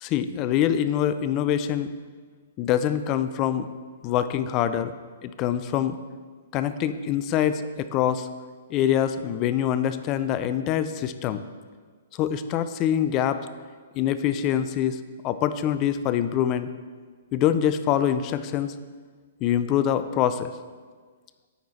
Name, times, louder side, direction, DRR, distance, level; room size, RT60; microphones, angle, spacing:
voice 1, 0.0-1.9 2.6-3.7 4.0-4.9 5.2-6.0 6.5-8.3 8.7-11.4 12.2-13.4 13.9-16.7 17.3-18.7 19.4-20.5, left 10 dB, 30° left, 12 dB, 0.4 m, -24 dB
9.2 x 4.5 x 4.0 m, 1.5 s
figure-of-eight pair, 120°, 0 cm